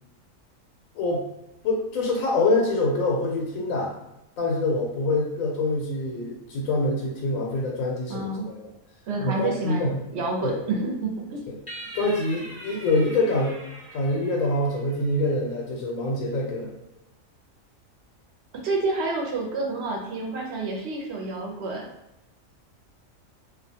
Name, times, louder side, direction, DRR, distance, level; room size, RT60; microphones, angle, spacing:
voice 1, 1.6-3.9 4.4-8.6 9.2-10.0 10.4-10.6 11.5-11.6 11.9-13.6 13.9-16.7, left 2 dB, 85° left, -2 dB, 1.0 m, -25 dB
voice 2, 8.1-8.5 9.1-11.4 18.6-21.9, right 3 dB, 65° right, 0 dB, 0.8 m, -29 dB
sound 1, 11.7-15.2, right 1 dB, 10° left, 0.5 m, -42 dB
2.4 x 2.2 x 2.7 m, 0.91 s
omnidirectional pair, 1.4 m